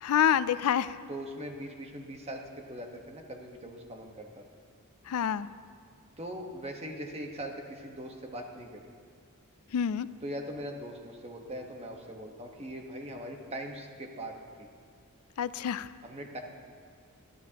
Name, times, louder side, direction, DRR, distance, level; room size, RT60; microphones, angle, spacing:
voice 1, 0.0-0.9 5.1-5.5 9.7-10.1 15.4-15.9, left 8 dB, 80° left, 15 dB, 0.4 m, -27 dB
voice 2, 1.1-4.4 6.2-8.9 10.2-14.7 16.0-16.4, right 1 dB, 30° right, 2 dB, 1.2 m, -41 dB
21.5 x 11.5 x 2.9 m, 2.3 s
head